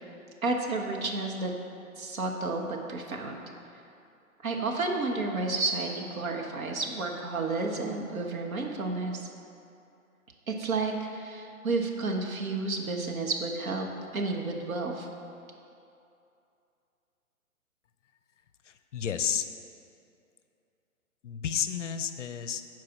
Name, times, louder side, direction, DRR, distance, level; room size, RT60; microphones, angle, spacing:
voice 1, 0.4-1.5 2.0-3.3 4.4-9.3 10.5-15.1, right 3 dB, 70° right, 2 dB, 1.4 m, -31 dB
voice 2, 18.6-19.5 21.2-22.6, left 8 dB, 55° left, 10 dB, 0.6 m, -31 dB
9.5 x 4.7 x 6.0 m, 2.6 s
hypercardioid pair, 140°, 43 cm